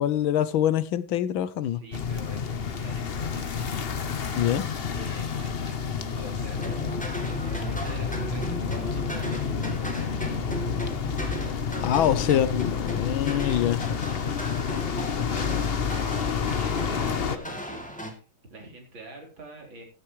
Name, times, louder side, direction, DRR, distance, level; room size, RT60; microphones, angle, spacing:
voice 1, 0.0-1.8 4.3-4.6 11.8-13.9, left 10 dB, 75° left, 15 dB, 1.5 m, -24 dB
voice 2, 1.7-3.9 4.9-6.8 7.2-10.4 12.3-12.4 15.2-15.9 16.5-18.2 18.5-19.8, right 1 dB, 65° right, 1 dB, 4.8 m, -45 dB
sound 1, 1.9-17.4, left 6 dB, 55° left, 0.6 m, -29 dB
sound 2, 6.5-18.1, equal, 5° left, 2.4 m, -36 dB
14.5 x 13.5 x 3.1 m, 0.34 s
omnidirectional pair, 2.3 m